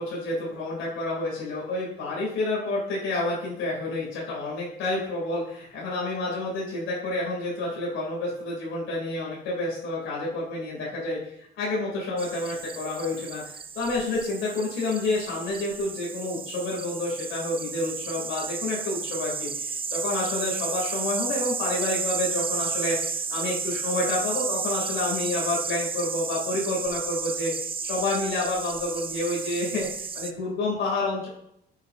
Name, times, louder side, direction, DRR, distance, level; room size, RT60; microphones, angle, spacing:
voice 1, 0.0-27.5 27.8-31.3, left 2 dB, 90° left, -4 dB, 2.2 m, -29 dB
sound 1, 12.2-30.3, right 5 dB, 25° right, 0.5 m, -32 dB
8.3 x 4.9 x 2.5 m, 0.74 s
cardioid pair, 90°, 20 cm